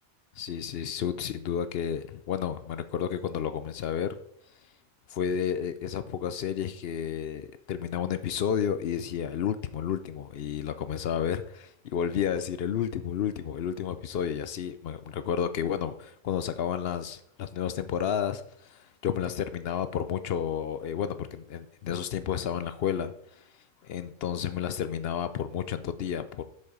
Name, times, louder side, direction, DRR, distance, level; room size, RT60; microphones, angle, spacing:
voice 1, 0.4-4.2 4.6-4.7 5.1-26.4, left 8 dB, 65° left, 11 dB, 0.6 m, -31 dB
6.9 x 6.5 x 4.9 m, 0.70 s
omnidirectional pair, 1.5 m